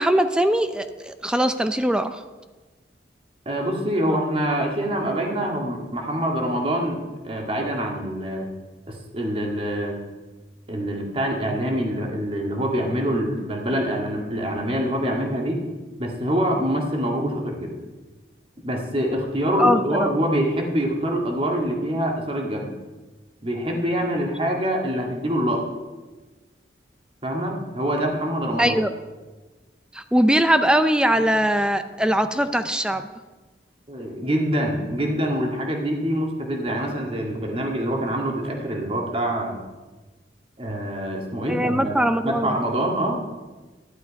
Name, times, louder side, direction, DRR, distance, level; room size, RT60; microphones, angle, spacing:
voice 1, 0.0-2.2 19.6-20.1 28.6-28.9 29.9-33.1 41.5-42.6, equal, 5° right, 10 dB, 0.5 m, -21 dB
voice 2, 3.5-8.5 8.9-10.0 10.7-15.6 16.0-17.7 18.6-22.7 23.4-25.6 27.2-28.8 33.9-39.6 40.6-43.2, equal, 30° right, 1 dB, 2.0 m, -25 dB
12.0 x 11.0 x 5.2 m, 1.2 s
head